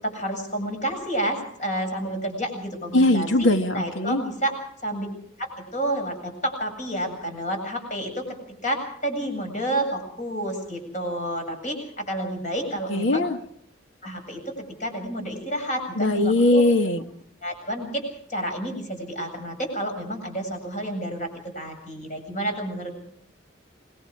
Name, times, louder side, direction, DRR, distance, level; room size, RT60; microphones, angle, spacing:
voice 1, 0.0-3.3 3.7-5.1 5.4-8.4 8.6-13.2 14.0-14.5 14.8-16.6 17.4-21.3 21.5-22.9, right 1 dB, 40° left, 4 dB, 7.5 m, -30 dB
voice 2, 2.9-4.2 12.9-13.4 16.0-17.0, left 2 dB, 90° left, 6 dB, 2.1 m, -20 dB
26.5 x 21.5 x 4.9 m, 0.65 s
head